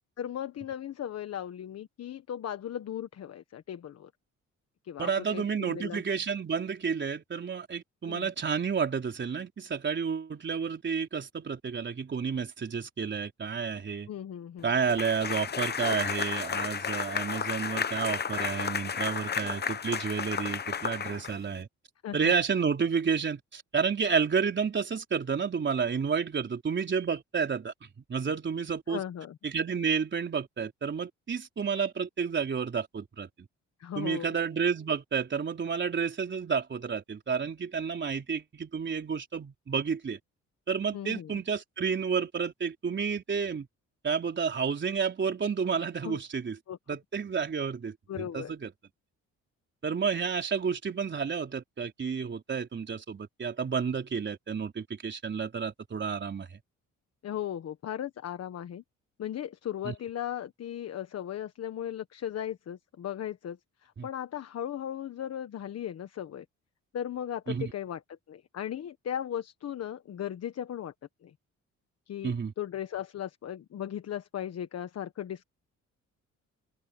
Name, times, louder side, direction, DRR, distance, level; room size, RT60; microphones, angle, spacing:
voice 1, 0.2-4.1 4.8-6.0 8.1-8.3 14.1-14.7 22.0-22.3 28.9-29.4 33.8-34.3 40.9-41.3 46.0-46.2 46.7-46.8 48.1-48.5 57.2-58.8 59.2-66.4 66.9-68.0 68.3-70.9 71.2-71.3 72.1-75.4, left 10 dB, 60° left, 1.4 m, -37 dB
voice 2, 5.0-14.1 14.6-21.7 22.1-29.0 29.4-33.5 34.0-40.2 40.7-43.7 44.0-46.6 46.9-48.7 49.8-56.5 59.8-59.9 64.0-64.1 67.5-67.7 72.2-72.5, right 6 dB, 40° right, 4.0 m, -30 dB
sound 1, 14.9-21.6, left 7 dB, 35° left, 0.9 m, -32 dB
open air
cardioid pair, 100°, 29 cm